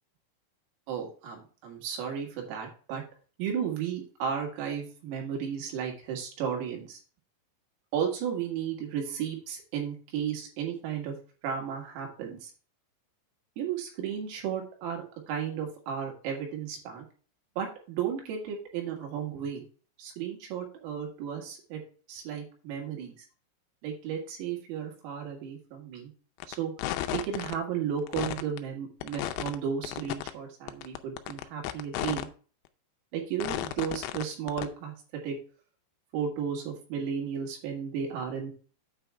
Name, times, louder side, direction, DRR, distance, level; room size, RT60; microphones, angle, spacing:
voice 1, 0.9-3.0 3.4-7.0 7.9-11.2 11.4-12.5 13.6-17.0 17.6-19.6 20.0-21.8 22.1-23.3 23.8-26.1 26.5-26.7 27.1-32.3 33.1-34.9 35.2-35.4 36.1-38.5, right 8 dB, 85° right, 1 dB, 4.6 m, -34 dB
sound 1, 26.4-26.5 26.8-27.5 28.0-28.6 29.0-29.6 29.8-30.3 30.7-32.2 32.7-32.8 33.4-34.2 34.5-34.7, left 14 dB, 85° left, 3.2 m, -33 dB
8.9 x 3.5 x 6.1 m, 0.39 s
omnidirectional pair, 5.9 m